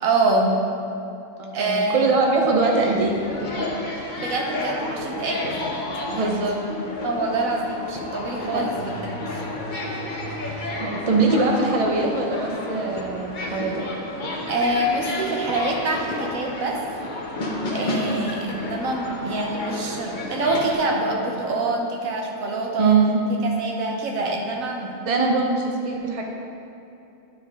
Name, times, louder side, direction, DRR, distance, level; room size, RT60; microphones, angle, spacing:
voice 1, 0.0-0.6 1.5-2.0 4.2-5.7 6.1-6.4 7.0-9.4 14.5-16.8 17.7-23.0 23.3-24.9, right 2 dB, 90° right, 1 dB, 1.3 m, -25 dB
voice 2, 1.4-3.2 6.2-6.6 8.4-8.6 10.4-13.8 22.8-23.2 25.1-26.2, right 3 dB, 35° right, 0 dB, 0.7 m, -22 dB
sound 1, 2.6-20.7, left 1 dB, 40° left, 0.9 m, -31 dB
10.0 x 4.7 x 3.6 m, 2.7 s
omnidirectional pair, 1.4 m